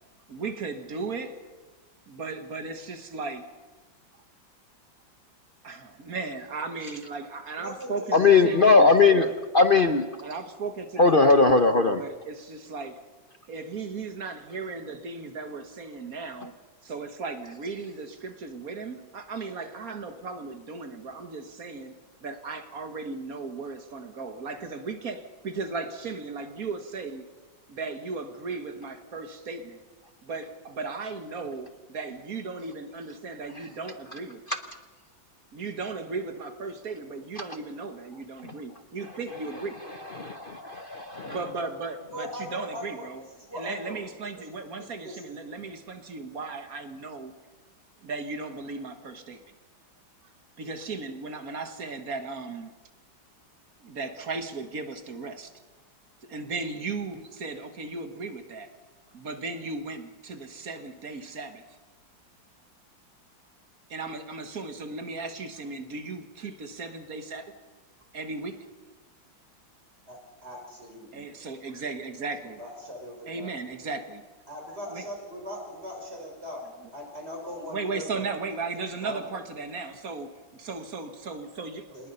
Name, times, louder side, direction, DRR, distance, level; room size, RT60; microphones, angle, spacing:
voice 1, 0.3-1.4 2.1-3.5 5.6-9.3 10.2-13.0 13.5-16.5 16.8-21.9 22.2-27.3 27.7-29.8 30.2-34.4 35.5-39.8 41.3-43.2 43.5-47.3 48.0-49.5 50.6-52.8 53.8-55.5 56.3-58.7 59.1-61.8 63.9-67.5 68.1-68.7 71.1-72.6 73.3-74.2 74.9-75.1 77.7-81.9, right 4 dB, 50° right, 8 dB, 1.9 m, -36 dB
voice 2, 7.6-8.7 9.4-9.5 42.1-43.1 43.4-44.0 44.4-44.5 44.8-45.3 70.1-71.3 72.6-73.5 74.5-76.6 76.9-78.6 79.0-79.4 81.9-82.1, equal, 30° right, 1 dB, 5.7 m, -40 dB
voice 3, 8.1-9.3 9.5-10.0 11.0-12.0 40.1-41.4, left 4 dB, 50° left, 8 dB, 0.6 m, -19 dB
26.5 x 19.5 x 5.5 m, 1.3 s
omnidirectional pair, 2.1 m